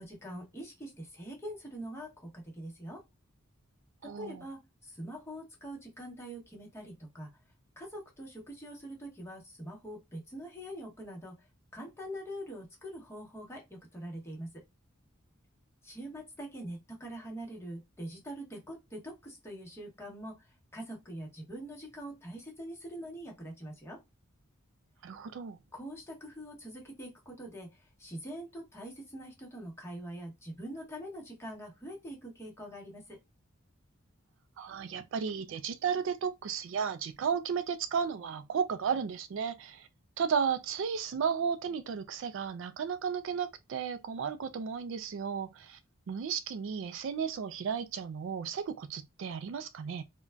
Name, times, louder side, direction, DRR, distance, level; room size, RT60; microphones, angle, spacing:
voice 1, 0.0-3.0 4.0-7.3 7.8-11.5 11.7-14.6 15.8-24.0 25.7-33.2, equal, 10° left, 0.9 m, -44 dB
voice 2, 4.0-4.4 25.0-25.6 34.6-39.9 40.2-45.8 46.1-50.0, right 6 dB, 65° right, 0.3 m, -34 dB
3.7 x 2.2 x 2.2 m
head